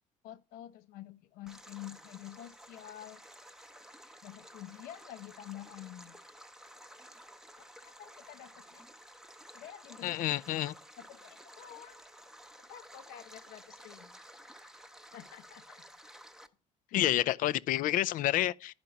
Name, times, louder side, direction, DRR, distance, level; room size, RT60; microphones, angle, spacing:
voice 1, 0.2-3.2 4.2-6.2 7.6-8.8 9.5-10.3 11.0-12.0 12.6-14.2 15.1-15.8 16.9-17.0, left 12 dB, 85° left, 0.8 m, -49 dB
Stream, 1.5-16.5, equal, 5° right, 0.8 m, -53 dB
voice 2, 10.0-10.7 16.9-18.7, left 14 dB, 70° left, 0.5 m, -29 dB
11.5 x 5.2 x 5.8 m
cardioid pair, 135°, 15 cm